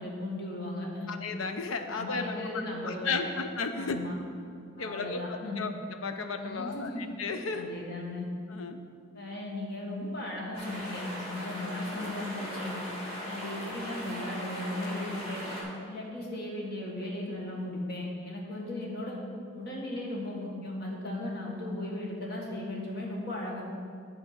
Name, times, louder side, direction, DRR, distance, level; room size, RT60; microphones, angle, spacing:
voice 1, 0.0-1.1 1.9-3.3 3.7-4.1 4.8-5.6 6.4-7.1 7.5-8.3 9.1-12.8 13.2-15.5 15.8-19.2 19.5-23.6, left 1 dB, 50° left, -2 dB, 1.6 m, -36 dB
voice 2, 1.1-2.3 2.8-4.0 4.8-5.7 6.0-7.7 8.5-8.8, left 4 dB, 85° left, 7 dB, 0.6 m, -34 dB
sound 1, 10.5-15.6, equal, 30° left, 2.4 m, -39 dB
8.5 x 4.7 x 6.6 m, 2.2 s
head